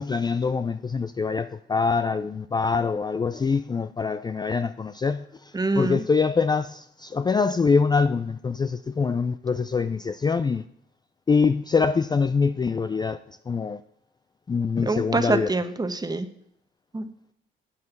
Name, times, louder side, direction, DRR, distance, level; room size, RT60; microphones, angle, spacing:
voice 1, 0.0-10.6 11.3-13.8 14.5-15.5, left 5 dB, 20° left, 0.4 m, -24 dB
voice 2, 5.5-6.0 14.9-16.3 16.9-17.1, right 3 dB, 20° right, 1.0 m, -25 dB
9.7 x 7.7 x 6.9 m
cardioid pair, 90°, 20 cm